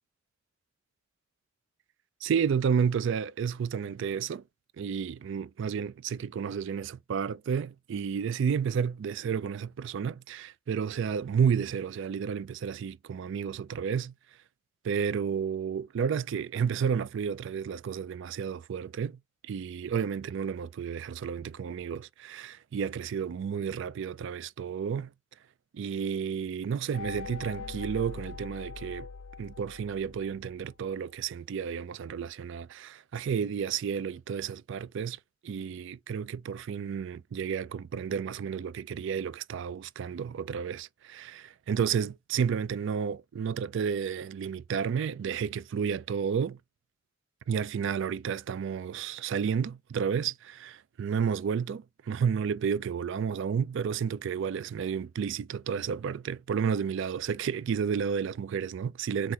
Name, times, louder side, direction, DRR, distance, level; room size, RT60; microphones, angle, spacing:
voice 1, 2.2-4.4 4.8-14.1 14.8-19.2 19.4-25.1 25.7-29.1 29.4-35.2 35.4-46.6 47.5-59.3, right 7 dB, 65° right, 0.3 m, -31 dB
sound 1, 26.9-30.7, left 5 dB, 70° left, 0.5 m, -42 dB
4.4 x 2.5 x 3.8 m
head